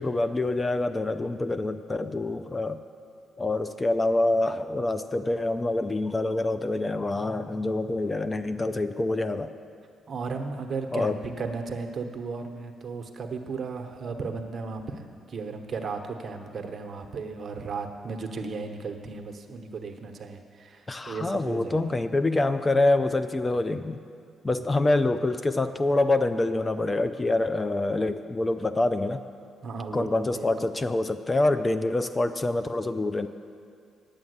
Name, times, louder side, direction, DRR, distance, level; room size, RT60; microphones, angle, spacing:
voice 1, 0.0-2.8 3.4-9.5 10.9-11.2 20.9-24.0 24.4-29.2 29.9-33.3, left 2 dB, 25° left, 10 dB, 0.4 m, -26 dB
voice 2, 10.1-21.8 29.6-30.1 30.3-30.5, right 4 dB, 45° right, 4 dB, 1.0 m, -35 dB
10.0 x 7.2 x 8.0 m, 2.3 s
cardioid pair, 90°, 0 cm